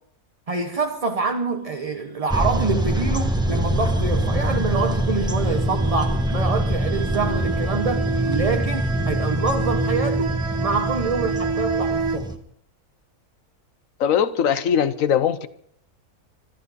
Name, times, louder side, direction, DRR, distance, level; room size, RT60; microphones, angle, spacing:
voice 1, 0.5-12.4, right 4 dB, 30° right, 0.9 m, -26 dB
sound 1, 2.3-12.3, right 1 dB, 5° right, 1.1 m, -24 dB
sound 2, 3.1-12.2, right 4 dB, 80° right, 1.6 m, -30 dB
voice 2, 14.0-15.5, left 8 dB, 65° left, 1.2 m, -20 dB
25.5 x 12.5 x 4.2 m
omnidirectional pair, 1.6 m